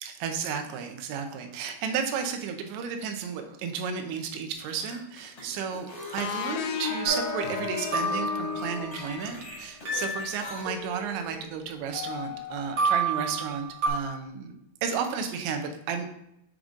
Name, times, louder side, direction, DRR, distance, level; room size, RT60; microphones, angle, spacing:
voice 1, 0.0-14.6 14.8-16.1, right 6 dB, 90° right, 6 dB, 3.1 m, -33 dB
sound 1, 4.5-10.6, left 2 dB, 25° left, 1.5 m, -43 dB
sound 2, 6.2-9.7, left 7 dB, 90° left, 3.0 m, -34 dB
sound 3, 7.0-9.3 9.8-11.6 11.9-13.9, right 2 dB, 50° right, 1.6 m, -32 dB
7.7 x 5.0 x 3.7 m, 0.79 s
omnidirectional pair, 5.0 m